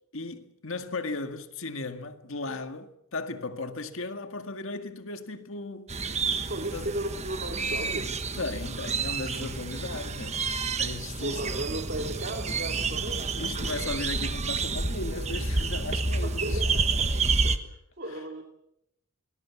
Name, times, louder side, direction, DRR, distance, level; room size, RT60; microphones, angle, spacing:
voice 1, 0.1-6.0 6.7-6.9 8.4-11.6 12.8-12.9 13.4-16.8, left 3 dB, 65° left, 1.9 m, -36 dB
sound 1, 5.9-17.6, right 4 dB, 30° right, 1.3 m, -29 dB
voice 2, 6.5-8.2 11.2-13.4 16.0-18.5, right 1 dB, 50° right, 2.6 m, -36 dB
25.5 x 20.5 x 7.3 m
head